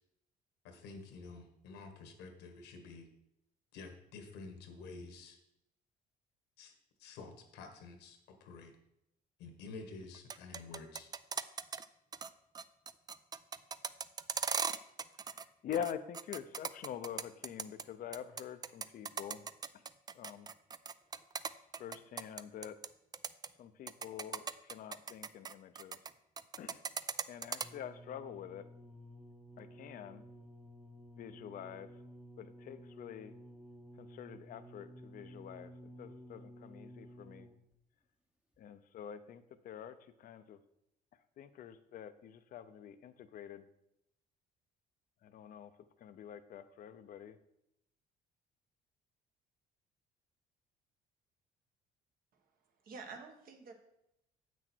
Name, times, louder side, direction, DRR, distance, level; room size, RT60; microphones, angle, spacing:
voice 1, 0.6-3.1 3.7-5.4 6.6-6.7 7.0-8.7 9.4-11.1, left 3 dB, 85° left, 5 dB, 1.6 m, -50 dB
sound 1, 10.1-11.8 12.1-12.3 12.5-15.4 15.7-17.8 18.1-22.9 23.1-23.5 23.9-26.1 26.4-27.7, right 6 dB, 25° right, 0.3 m, -38 dB
voice 2, 15.6-19.4 20.1-20.5 21.8-22.8 23.6-26.0 26.6-26.8 27.3-28.7 29.6-30.2 31.2-31.9 32.4-33.3 34.0-35.7 36.0-37.5 38.6-40.6 41.4-43.6 45.2-45.7 46.0-47.4, left 9 dB, 55° left, 11 dB, 0.6 m, -46 dB
sound 2, 27.6-37.7 38.5-38.6, equal, 5° right, 0.9 m, -54 dB
voice 3, 52.8-53.7, right 4 dB, 60° right, 5 dB, 1.5 m, -49 dB
7.8 x 6.2 x 4.5 m, 0.81 s
cardioid pair, 110°, 17 cm